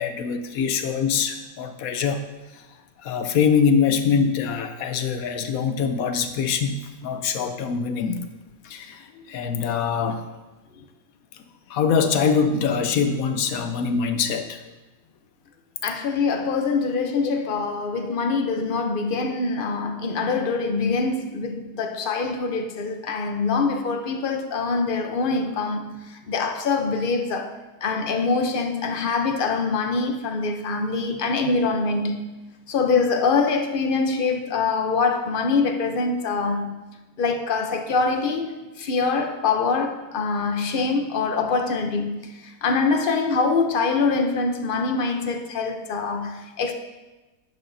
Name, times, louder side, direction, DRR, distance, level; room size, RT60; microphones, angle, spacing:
voice 1, 0.0-2.2 2.5-2.7 3.0-8.3 8.6-10.2 11.7-14.6, left 6 dB, 70° left, 1.1 m, -23 dB
voice 2, 15.8-32.2 32.7-36.8 37.2-46.7, left 4 dB, 45° left, 0.7 m, -24 dB
10.5 x 8.3 x 2.7 m
omnidirectional pair, 1.6 m